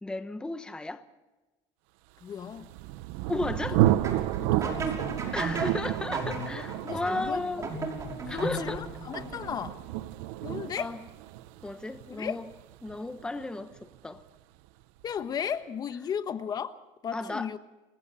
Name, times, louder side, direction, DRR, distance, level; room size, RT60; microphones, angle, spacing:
voice 1, 0.0-1.0 3.3-3.8 5.3-7.7 8.3-8.8 10.8-11.0 11.6-12.5 12.8-14.2 17.1-17.5, left 2 dB, 5° left, 1.1 m, -34 dB
voice 2, 2.2-2.7 4.4-5.1 6.4-6.5 6.8-7.4 8.3-9.8 10.4-10.9 12.2-12.4 15.0-16.7 17.0-17.6, left 8 dB, 35° left, 1.2 m, -35 dB
Thunder, 2.4-14.0, right 15 dB, 85° right, 0.9 m, -31 dB
sound 1, 3.9-9.8, right 3 dB, 30° right, 6.0 m, -36 dB
29.0 x 21.5 x 4.2 m
cardioid pair, 135°, 12 cm